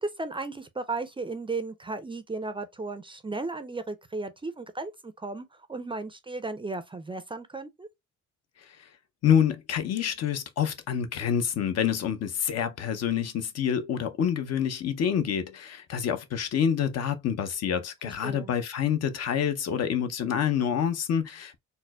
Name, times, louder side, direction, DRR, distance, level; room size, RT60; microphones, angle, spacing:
voice 1, 0.0-7.9 18.0-18.5, right 3 dB, 15° right, 0.4 m, -35 dB
voice 2, 9.2-21.6, left 8 dB, 55° left, 0.6 m, -27 dB
4.2 x 2.0 x 2.2 m
cardioid pair, 90°, 30 cm